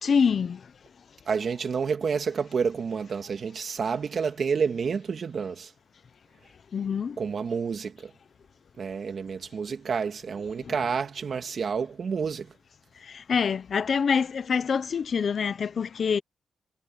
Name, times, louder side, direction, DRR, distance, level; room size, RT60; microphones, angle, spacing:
voice 1, 0.0-0.7 6.7-7.2 10.6-10.8 13.0-16.2, left 6 dB, 55° left, 0.8 m, -26 dB
voice 2, 1.3-5.7 7.2-7.9 8.8-12.5, right 6 dB, 50° right, 2.3 m, -29 dB
wide cardioid pair, 120°, 0 cm